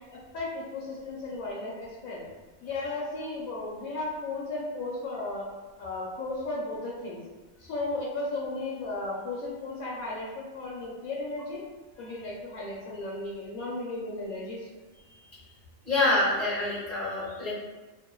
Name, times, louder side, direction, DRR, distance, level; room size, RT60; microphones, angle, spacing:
voice 1, 0.1-2.2 2.6-5.5 5.8-7.2 7.6-11.6 12.0-14.7, left 2 dB, 75° left, -4 dB, 1.0 m, -35 dB
voice 2, 15.8-17.5, left 2 dB, 35° left, -7 dB, 1.0 m, -26 dB
2.8 x 2.6 x 2.3 m, 1.2 s
omnidirectional pair, 1.5 m